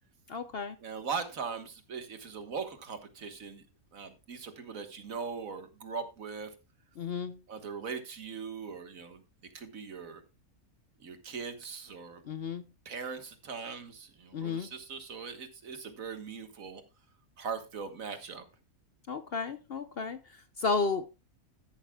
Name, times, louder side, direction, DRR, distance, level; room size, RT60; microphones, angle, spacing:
voice 1, 0.3-0.8 7.0-7.4 12.2-12.7 14.3-14.7 19.1-21.1, left 4 dB, 50° left, 11 dB, 0.8 m, -33 dB
voice 2, 0.8-3.6 3.9-6.5 7.5-9.2 9.5-10.2 11.0-12.2 12.9-16.8 17.4-18.5, right 5 dB, 65° right, 8 dB, 1.8 m, -40 dB
13.0 x 11.5 x 2.3 m, 0.28 s
omnidirectional pair, 1.5 m